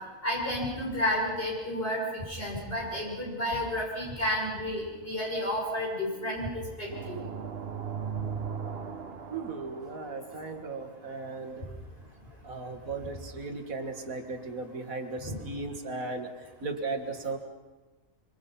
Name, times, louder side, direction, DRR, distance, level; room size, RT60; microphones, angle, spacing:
voice 1, 0.2-7.2 15.2-15.4, left 1 dB, 40° left, -3 dB, 6.6 m, -31 dB
sound 1, 6.9-10.7, right 6 dB, 45° right, 1.4 m, -38 dB
voice 2, 9.3-11.7 12.4-16.3 16.6-17.4, right 3 dB, 80° right, 6 dB, 2.3 m, -36 dB
26.5 x 25.0 x 5.8 m, 1.2 s
omnidirectional pair, 1.4 m